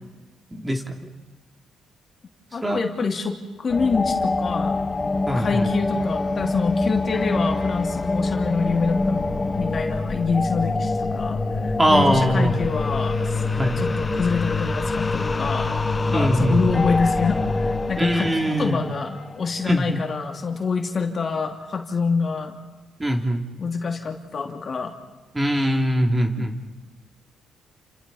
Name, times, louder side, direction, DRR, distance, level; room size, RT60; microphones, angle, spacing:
voice 1, 0.5-0.8 2.6-2.8 5.3-5.7 11.8-12.5 13.6-13.8 16.1-16.7 18.0-18.8 19.6-20.0 23.0-23.4 25.3-26.5, equal, 15° right, 2 dB, 3.0 m, -22 dB
voice 2, 2.5-4.9 5.3-13.4 13.8-15.7 16.1-22.6 23.6-24.9 26.4-26.5, left 4 dB, 40° left, 3 dB, 2.7 m, -26 dB
sound 1, 3.7-19.9, left 3 dB, 25° left, 1.2 m, -25 dB
29.5 x 27.5 x 4.2 m, 1.2 s
cardioid pair, 90°, 0 cm